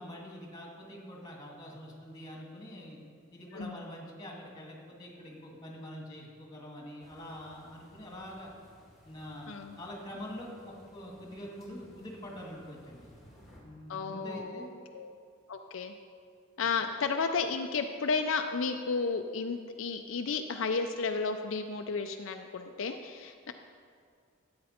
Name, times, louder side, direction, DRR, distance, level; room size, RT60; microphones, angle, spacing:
voice 1, 0.0-3.0 3.3-8.5 9.0-9.5 9.8-13.1 13.6-14.8, equal, 20° left, -1 dB, 1.9 m, -45 dB
sound 1, 7.0-13.6, equal, ahead, 2.0 m, -59 dB
voice 2, 13.9-14.7 14.9-15.1 15.5-15.9 16.6-23.5, left 4 dB, 65° left, 5 dB, 0.5 m, -33 dB
13.5 x 8.6 x 4.3 m, 2.2 s
head